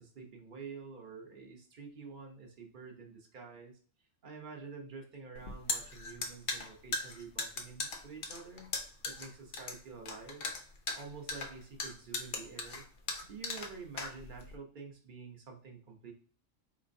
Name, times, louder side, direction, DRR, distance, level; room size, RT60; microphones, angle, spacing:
voice 1, 0.0-3.7 4.2-8.7 9.0-10.5 10.9-12.8 13.2-16.1, right 5 dB, 45° right, 1 dB, 0.7 m, -48 dB
sound 1, 5.3-14.6, left 3 dB, 55° left, 0.7 m, -38 dB
4.2 x 3.2 x 2.5 m, 0.42 s
omnidirectional pair, 1.4 m